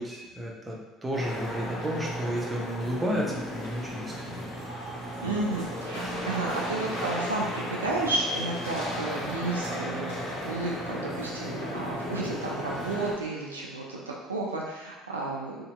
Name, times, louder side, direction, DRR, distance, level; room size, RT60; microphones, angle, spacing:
voice 1, 0.0-4.4, equal, 15° right, -3 dB, 0.7 m, -32 dB
sound 1, 1.1-13.1, equal, 65° left, 0.8 m, -35 dB
voice 2, 5.2-15.6, right 2 dB, 90° right, -3 dB, 0.3 m, -32 dB
2.7 x 2.0 x 2.9 m, 1.1 s
figure-of-eight pair, 60°, 0 cm